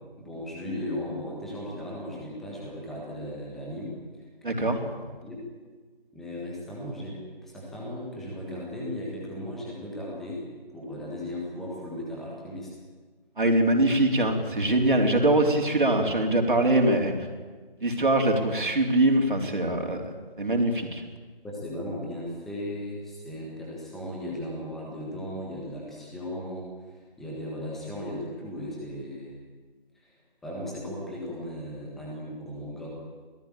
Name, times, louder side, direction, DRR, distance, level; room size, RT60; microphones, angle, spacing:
voice 1, 0.2-4.8 5.2-5.4 6.1-10.5 10.7-12.7 21.4-29.4 29.9-30.2 30.4-32.9, left 1 dB, ahead, -4 dB, 1.5 m, -36 dB
voice 2, 4.4-4.8 13.4-17.3 17.8-20.0 20.4-21.0, right 1 dB, 60° right, 2 dB, 3.9 m, -23 dB
27.5 x 18.5 x 8.9 m, 1.4 s
figure-of-eight pair, 160°, 29 cm